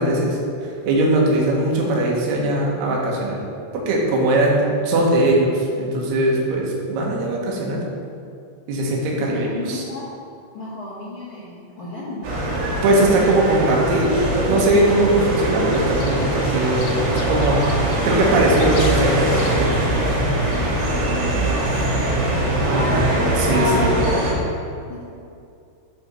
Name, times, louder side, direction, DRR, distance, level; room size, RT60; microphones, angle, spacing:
voice 1, 0.0-3.4 3.7-7.8 8.7-9.8 12.8-17.7 18.0-20.2 22.6-23.1 23.3-24.0, right 1 dB, 65° right, -2 dB, 1.9 m, -20 dB
voice 2, 9.2-10.0 10.5-12.3 17.3-18.0 21.3-23.2 23.5-24.4 24.9-25.0, left 2 dB, 65° left, -11 dB, 1.4 m, -35 dB
sound 1, 12.2-24.3, right 1 dB, 80° right, 3.7 m, -22 dB
sound 2, 15.7-21.2, left 3 dB, 80° left, 2.4 m, -36 dB
7.8 x 3.4 x 6.1 m, 2.5 s
omnidirectional pair, 4.5 m